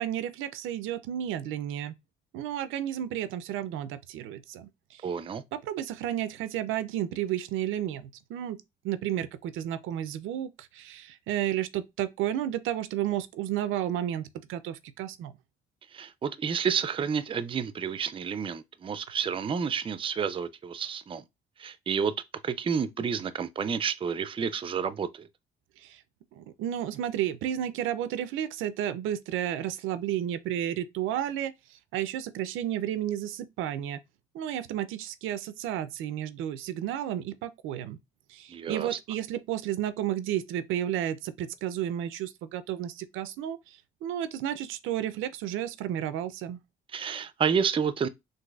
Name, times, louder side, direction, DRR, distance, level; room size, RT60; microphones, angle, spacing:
voice 1, 0.0-1.9 2.3-5.1 5.5-8.6 8.8-15.3 25.8-26.0 26.3-34.0 34.3-38.0 38.3-46.6, right 11 dB, 90° right, 0.4 m, -32 dB
voice 2, 5.0-5.4 15.9-21.2 21.6-22.1 22.4-25.3 38.5-39.0 46.9-48.1, right 6 dB, 25° right, 0.4 m, -30 dB
3.9 x 2.5 x 2.3 m
cardioid pair, 90°, 20 cm